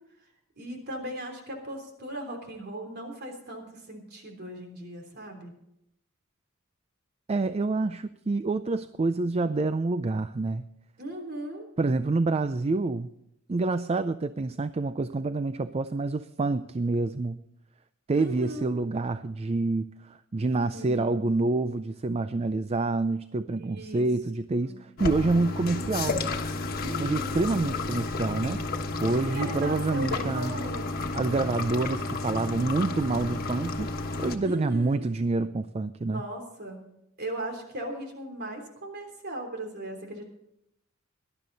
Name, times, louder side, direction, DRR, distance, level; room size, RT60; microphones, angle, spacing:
voice 1, 0.6-5.5 11.0-11.7 18.1-18.6 20.7-21.3 23.6-24.1 24.6-24.9 26.8-27.5 29.2-31.1 34.4-35.1 36.0-36.8 37.2-40.2, right 1 dB, 50° right, 3 dB, 3.4 m, -38 dB
voice 2, 7.3-10.7 11.8-13.1 13.5-17.4 18.1-26.2 27.0-28.6 29.0-30.6 31.1-36.2, right 3 dB, 30° right, 12 dB, 0.4 m, -27 dB
sound 1, 25.0-34.4, left 3 dB, 45° left, 1.4 m, -32 dB
18.5 x 12.0 x 4.0 m, 0.80 s
head